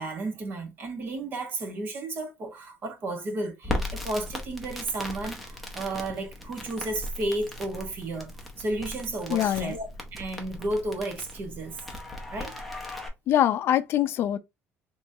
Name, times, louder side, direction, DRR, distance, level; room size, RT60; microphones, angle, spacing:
voice 1, 0.0-8.3 8.6-11.8 12.3-12.5, right 2 dB, 40° right, 1.1 m, -33 dB
Crackle, 3.6-13.1, left 1 dB, ahead, 0.8 m, -37 dB
voice 2, 9.3-9.8 13.3-14.4, left 11 dB, 55° left, 0.3 m, -24 dB
3.6 x 3.0 x 2.7 m
cardioid pair, 145°, 5 cm